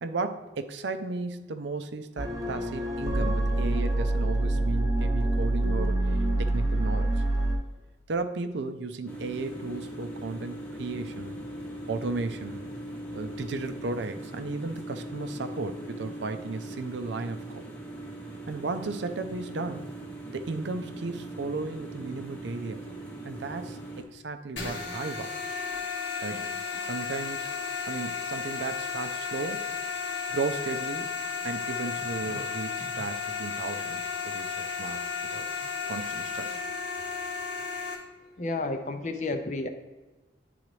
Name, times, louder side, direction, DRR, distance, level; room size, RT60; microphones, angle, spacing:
voice 1, 0.0-7.2 8.1-11.4 11.9-12.7 13.1-17.6 18.5-19.9 20.3-22.9 23.2-25.3 26.2-26.5 26.8-27.5 27.9-29.7 30.3-31.1 31.4-35.0 35.3-35.5 35.8-36.6, right 3 dB, 70° right, 8 dB, 0.5 m, -35 dB
sound 1, 2.2-7.6, right 1 dB, 20° right, 0.8 m, -26 dB
sound 2, 9.1-24.0, right 1 dB, 10° left, 0.9 m, -40 dB
sound 3, 24.6-37.9, left 5 dB, 80° left, 1.4 m, -33 dB
voice 2, 38.4-39.7, left 2 dB, 40° left, 7 dB, 0.5 m, -31 dB
9.7 x 3.9 x 3.1 m, 1.2 s
head